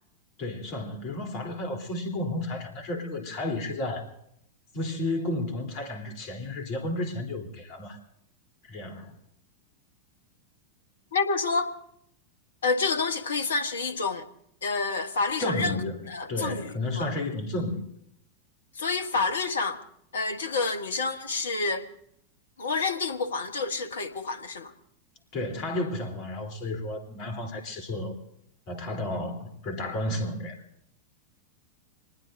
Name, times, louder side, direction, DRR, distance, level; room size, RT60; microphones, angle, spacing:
voice 1, 0.4-4.1 4.7-8.0 8.6-9.1 15.4-17.9 25.3-28.2 28.7-30.6, left 1 dB, 40° left, 3.4 m, -32 dB
voice 2, 11.1-11.7 12.6-14.3 14.6-15.8 16.1-17.1 18.8-19.8 20.1-21.9 22.6-24.7, left 4 dB, 65° left, 1.1 m, -28 dB
26.0 x 20.0 x 2.6 m
figure-of-eight pair, 90°, 0 cm